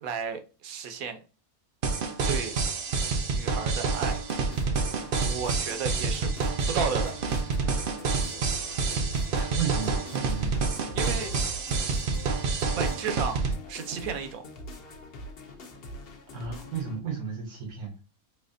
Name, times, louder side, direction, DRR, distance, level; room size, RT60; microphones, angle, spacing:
voice 1, 0.0-1.2 2.2-2.5 3.3-4.2 5.2-6.3 6.7-7.1 10.9-11.3 12.8-13.4 13.7-14.4, right 6 dB, 75° right, 1.1 m, -33 dB
sound 1, 1.8-13.5, right 4 dB, 55° right, 0.6 m, -28 dB
sound 2, 4.1-17.0, equal, 50° left, 0.8 m, -43 dB
voice 2, 9.3-10.5 16.3-18.0, right 6 dB, 90° right, 1.6 m, -33 dB
4.1 x 2.9 x 2.6 m
omnidirectional pair, 1.5 m